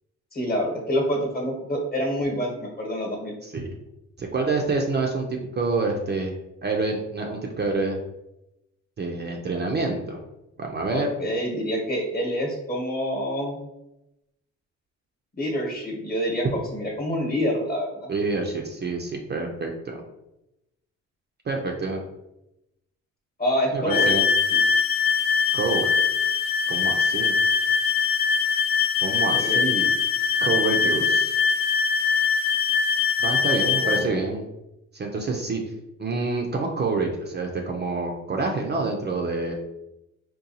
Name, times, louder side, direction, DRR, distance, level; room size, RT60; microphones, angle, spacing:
voice 1, 0.3-3.3 10.9-13.6 15.4-18.1 23.4-24.1 24.5-24.6 29.3-29.6 33.6-34.2, equal, 30° left, 0 dB, 1.1 m, -27 dB
voice 2, 4.2-6.3 6.6-8.0 9.0-10.2 10.6-11.1 18.1-20.0 21.5-22.0 23.7-24.3 25.5-25.9 26.7-27.4 29.0-29.9 30.4-31.3 33.2-34.4 34.9-35.6 36.0-39.5, right 3 dB, 35° right, 1 dB, 0.5 m, -27 dB
sound 1, 23.9-34.0, left 6 dB, 50° left, 0.4 m, -22 dB
3.9 x 2.3 x 2.7 m, 0.89 s
cardioid pair, 90°, 30 cm